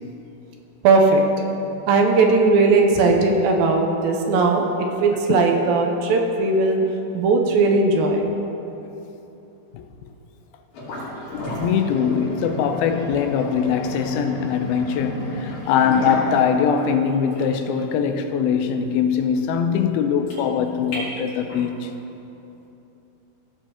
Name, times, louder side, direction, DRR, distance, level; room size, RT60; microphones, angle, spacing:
voice 1, 0.8-1.2 1.9-4.6 5.0-6.8 7.1-8.3, right 3 dB, 80° right, 2 dB, 2.4 m, -18 dB
sound 1, 10.7-21.7, equal, 65° left, 3.9 m, -33 dB
voice 2, 11.6-21.9, left 7 dB, 85° left, 7 dB, 2.4 m, -22 dB
16.0 x 7.1 x 2.9 m, 3.0 s
omnidirectional pair, 4.3 m